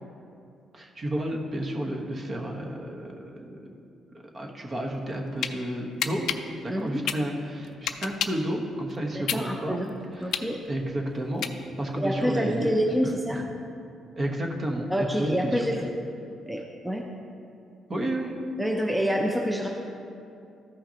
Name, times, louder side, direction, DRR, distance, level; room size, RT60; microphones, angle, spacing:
voice 1, 0.7-3.8 4.3-6.3 6.6-9.8 10.2-11.5 11.8-13.4 14.2-15.8 17.9-18.4, right 1 dB, 35° right, 1 dB, 1.1 m, -31 dB
sound 1, 5.0-5.5 6.0-8.5 8.9-11.9, left 9 dB, 75° left, 0.4 m, -31 dB
voice 2, 6.7-7.0 9.1-9.9 10.2-10.6 12.0-13.4 14.9-15.7 16.5-17.0 18.6-19.7, equal, 5° right, 0 dB, 0.7 m, -27 dB
14.0 x 5.6 x 2.9 m, 2.5 s
cardioid pair, 90°, 0 cm